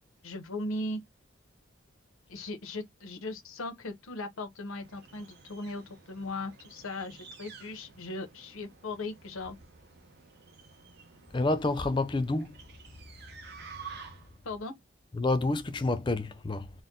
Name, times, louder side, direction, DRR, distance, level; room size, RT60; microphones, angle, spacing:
voice 1, 0.2-1.0 2.3-9.6 14.4-14.7, left 2 dB, 90° left, 0.8 m, -38 dB
sound 1, 4.6-14.5, right 5 dB, 50° right, 0.7 m, -51 dB
voice 2, 11.3-12.6 15.1-16.7, left 2 dB, 25° left, 0.4 m, -28 dB
4.1 x 2.2 x 3.6 m
head